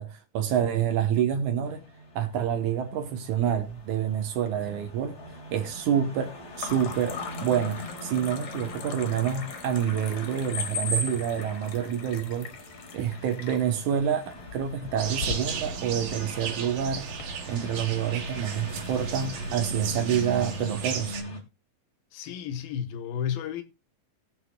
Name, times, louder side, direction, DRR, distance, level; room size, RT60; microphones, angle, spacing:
voice 1, 0.0-1.8 2.2-5.2 5.5-12.5 12.9-17.1 17.5-21.2, right 9 dB, 70° right, 2.1 m, -28 dB
sound 1, 1.6-21.4, equal, 35° left, 2.0 m, -40 dB
sound 2, 3.4-4.2 4.5-5.1 6.5-17.2, left 6 dB, 60° left, 2.6 m, -42 dB
sound 3, 15.0-21.2, right 5 dB, 90° right, 3.6 m, -35 dB
voice 2, 22.1-23.6, left 8 dB, 85° left, 2.9 m, -32 dB
20.0 x 6.7 x 2.2 m
omnidirectional pair, 4.1 m